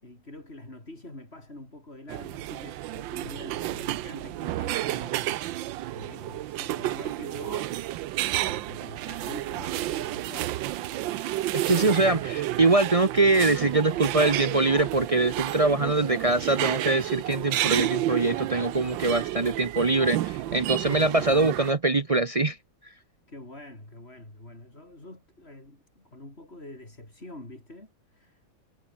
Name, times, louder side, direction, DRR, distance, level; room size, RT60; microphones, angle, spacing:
voice 1, 0.0-5.6 5.9-8.1 8.5-10.6 20.5-21.0 23.0-28.5, left 1 dB, 30° left, 6.1 m, -45 dB
sound 1, 2.1-21.7, right 14 dB, 80° right, 1.4 m, -31 dB
voice 2, 11.5-22.6, right 3 dB, 65° right, 0.3 m, -23 dB
omnidirectional pair, 2.1 m